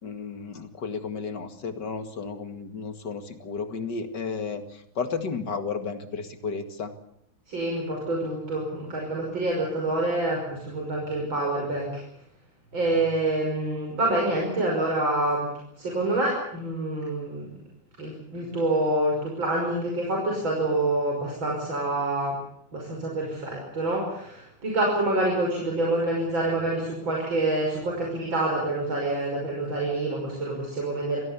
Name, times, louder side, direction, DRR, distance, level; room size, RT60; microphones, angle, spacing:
voice 1, 0.0-6.9, left 5 dB, 60° left, 7 dB, 2.7 m, -33 dB
voice 2, 7.5-12.0 12.7-15.5 15.8-17.5 18.0-22.4 22.7-31.2, right 2 dB, 85° right, -1 dB, 6.6 m, -27 dB
27.5 x 18.0 x 7.1 m, 0.71 s
omnidirectional pair, 2.1 m